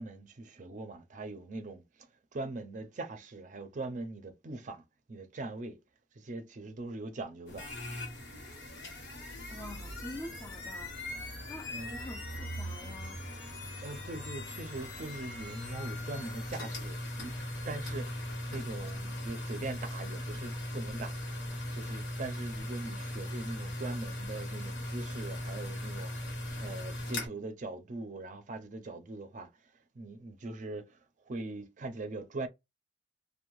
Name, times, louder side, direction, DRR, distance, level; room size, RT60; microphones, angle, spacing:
voice 1, 0.0-2.1 2.3-4.8 5.1-5.8 6.1-7.7 11.7-12.0 13.8-17.3 17.7-21.2 21.5-32.5, right 2 dB, 45° right, 0.4 m, -41 dB
sound 1, 7.5-27.3, left 1 dB, 85° left, 1.0 m, -39 dB
voice 2, 9.5-10.9 11.4-13.3, left 1 dB, 20° left, 0.3 m, -46 dB
2.6 x 2.1 x 3.0 m
head